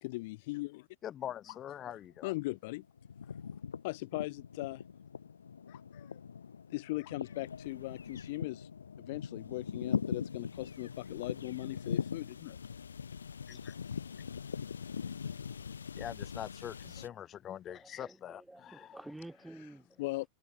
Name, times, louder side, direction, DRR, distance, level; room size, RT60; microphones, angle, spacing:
voice 1, 0.0-0.9 1.8-1.9 2.2-2.8 3.8-4.8 5.7-6.2 6.7-8.7 9.0-12.6 20.0-20.3, left 21 dB, 60° left, 1.1 m, -39 dB
voice 2, 1.0-2.3 13.5-13.7 16.0-19.0, left 10 dB, 35° left, 2.3 m, -43 dB
sound 1, 1.9-2.6 2.8-17.1, left 6 dB, 85° left, 2.6 m, -41 dB
voice 3, 17.0-20.3, right 1 dB, 5° right, 7.1 m, -51 dB
hypercardioid pair, 100°, 0 cm